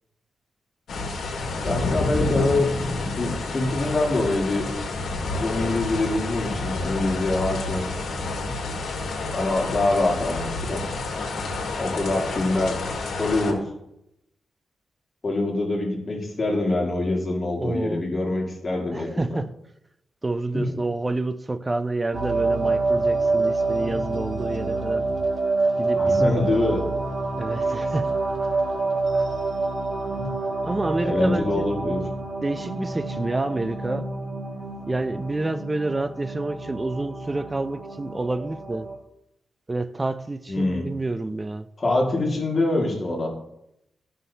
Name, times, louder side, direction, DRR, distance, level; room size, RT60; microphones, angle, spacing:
sound 1, 0.9-13.5, left 3 dB, 85° left, 1.4 m, -29 dB
voice 1, 1.6-2.7 3.2-4.7 5.3-7.9 9.3-10.8 11.8-12.7 13.2-13.6 15.2-19.4 20.5-20.8 26.0-26.8 30.2-30.4 31.0-32.0 40.5-40.9 41.8-43.3, left 2 dB, 30° left, 1.9 m, -24 dB
voice 2, 17.6-18.1 18.9-19.5 20.2-25.1 25.8-26.4 27.4-28.1 30.6-31.7 32.4-34.1 34.9-38.9 39.7-41.7, right 2 dB, 20° right, 0.3 m, -28 dB
sound 2, 22.1-39.0, right 3 dB, 65° right, 1.6 m, -27 dB
13.5 x 5.7 x 2.7 m
wide cardioid pair, 140°, 0 cm